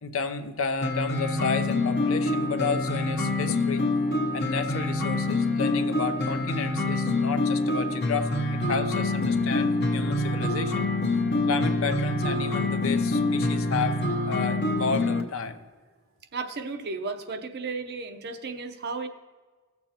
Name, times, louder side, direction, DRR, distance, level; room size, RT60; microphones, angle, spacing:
voice 1, 0.0-3.8 4.3-10.9 11.5-15.6, left 5 dB, 65° left, 9 dB, 0.7 m, -31 dB
sound 1, 0.8-15.2, left 2 dB, 50° left, 1.1 m, -26 dB
voice 2, 16.3-19.1, right 4 dB, 50° right, 8 dB, 0.7 m, -34 dB
16.5 x 7.0 x 2.9 m, 1.4 s
head